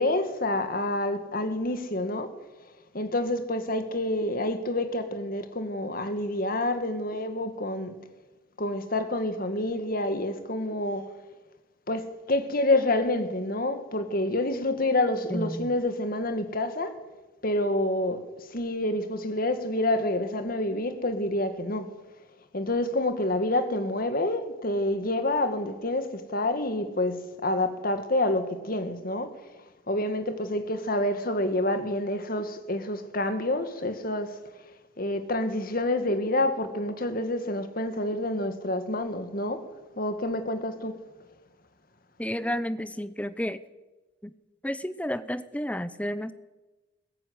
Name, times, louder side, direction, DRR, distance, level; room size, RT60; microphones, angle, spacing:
voice 1, 0.0-2.3 2.9-7.9 8.6-11.1 11.9-17.0 17.4-21.9 22.5-29.3 29.9-34.4 35.0-39.6 40.0-40.9, left 1 dB, 50° left, 2.1 m, -28 dB
voice 2, 15.3-15.7 42.2-43.6 44.2-44.3 44.6-46.3, equal, 5° left, 0.8 m, -31 dB
21.5 x 15.0 x 9.7 m
head